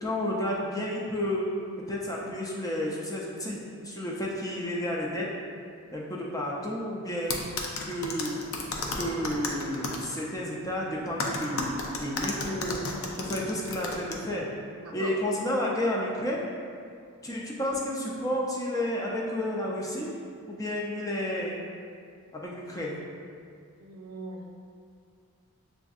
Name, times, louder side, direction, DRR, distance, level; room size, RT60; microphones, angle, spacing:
voice 1, 0.0-1.5 1.9-3.6 3.8-5.3 5.9-7.5 7.9-8.4 8.9-12.8 13.2-14.5 14.9-16.5 17.2-20.1 20.5-21.6 22.3-23.0, left 1 dB, 15° left, -3 dB, 0.4 m, -31 dB
sound 1, 7.3-10.1 11.2-14.1, left 3 dB, 70° left, 0.5 m, -32 dB
voice 2, 14.8-15.2 23.8-24.5, right 2 dB, 80° right, 1 dB, 0.5 m, -40 dB
6.9 x 2.6 x 2.3 m, 2.3 s
head